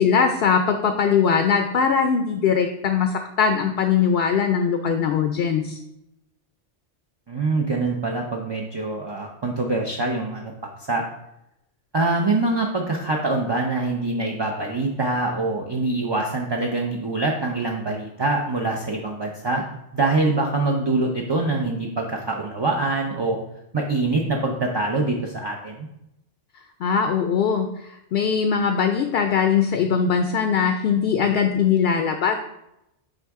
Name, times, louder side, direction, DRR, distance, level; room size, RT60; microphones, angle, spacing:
voice 1, 0.0-5.8 26.8-32.4, left 6 dB, 65° left, 6 dB, 0.7 m, -21 dB
voice 2, 7.3-11.0 11.9-19.6 19.9-23.4 23.7-25.9, right 2 dB, 35° right, 0 dB, 0.4 m, -24 dB
9.0 x 3.5 x 3.6 m, 0.85 s
omnidirectional pair, 1.2 m